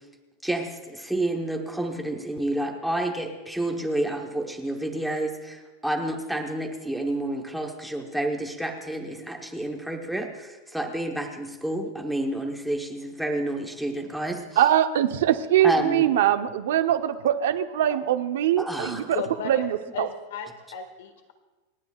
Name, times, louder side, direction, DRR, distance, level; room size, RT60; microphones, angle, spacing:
voice 1, 0.4-14.4 15.6-16.0 18.6-19.1, right 1 dB, ahead, 1 dB, 1.0 m, -29 dB
voice 2, 14.6-20.1, right 11 dB, 70° right, 8 dB, 0.8 m, -23 dB
voice 3, 19.1-19.7 19.9-21.3, left 6 dB, 75° left, 7 dB, 1.7 m, -35 dB
28.0 x 9.6 x 2.4 m, 1.2 s
supercardioid pair, 170°, 0 cm